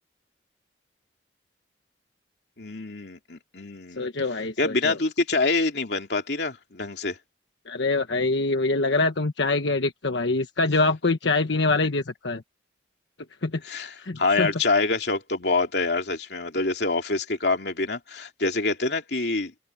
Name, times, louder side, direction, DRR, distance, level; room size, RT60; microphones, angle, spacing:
voice 1, 2.6-4.1 4.6-7.2 13.6-19.5, left 3 dB, 70° left, 2.8 m, -26 dB
voice 2, 4.0-5.0 7.7-12.4 13.4-13.6 14.0-14.5, left 3 dB, 90° left, 1.3 m, -24 dB
head